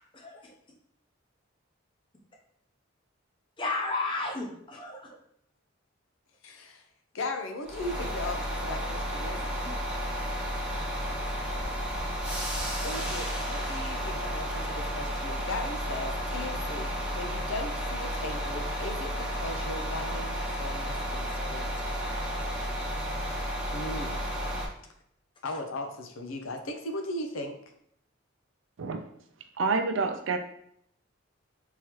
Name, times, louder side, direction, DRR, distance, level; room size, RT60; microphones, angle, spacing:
voice 1, 0.1-0.5 3.6-5.2, left 3 dB, 25° left, -1 dB, 0.7 m, -33 dB
voice 2, 6.4-6.8 7.1-9.4 12.8-22.0 23.7-24.2 25.4-27.5, left 2 dB, 80° left, 5 dB, 0.6 m, -37 dB
sound 1, 7.6-24.7, equal, 5° right, 0.8 m, -32 dB
voice 3, 29.6-30.4, right 4 dB, 70° right, 6 dB, 0.4 m, -27 dB
3.6 x 2.9 x 3.1 m, 0.69 s
head